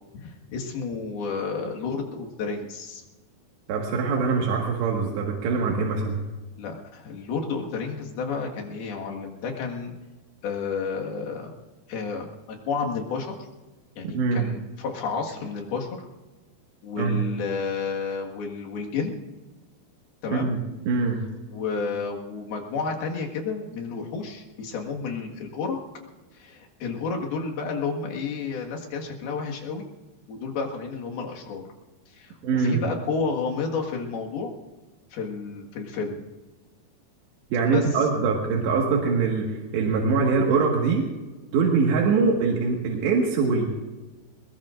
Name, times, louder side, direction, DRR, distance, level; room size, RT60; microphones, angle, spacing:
voice 1, 0.1-3.0 6.6-9.9 10.4-11.5 11.9-13.5 14.0-15.9 16.8-19.1 20.2-20.5 21.5-25.8 26.3-29.9 30.3-31.6 32.1-34.5 35.1-36.2 37.7-37.8, left 5 dB, 65° left, 0 dB, 3.5 m, -31 dB
voice 2, 3.7-6.2 14.1-14.4 17.0-17.2 20.3-20.6 20.9-21.2 32.4-32.8 37.5-41.1 41.5-43.7, right 4 dB, 90° right, -1 dB, 4.0 m, -23 dB
22.0 x 20.5 x 2.5 m, 1.2 s
omnidirectional pair, 4.9 m